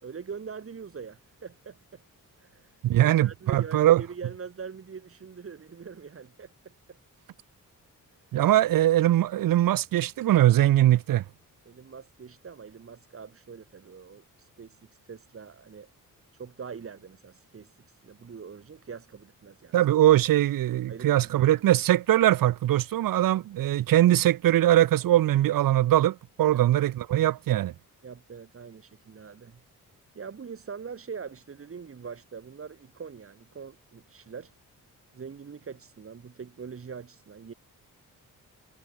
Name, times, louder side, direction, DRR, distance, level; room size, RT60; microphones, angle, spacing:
voice 1, 0.0-2.0 2.4-7.0 8.3-8.4 11.6-15.9 16.3-19.8 20.9-21.6 26.5-26.7 28.0-29.6 30.1-34.5 35.1-37.5, right 6 dB, 40° right, 4.7 m, -43 dB
voice 2, 2.8-4.0 8.3-11.2 19.7-27.7, right 13 dB, 80° right, 0.7 m, -21 dB
wide cardioid pair, 150°, 33 cm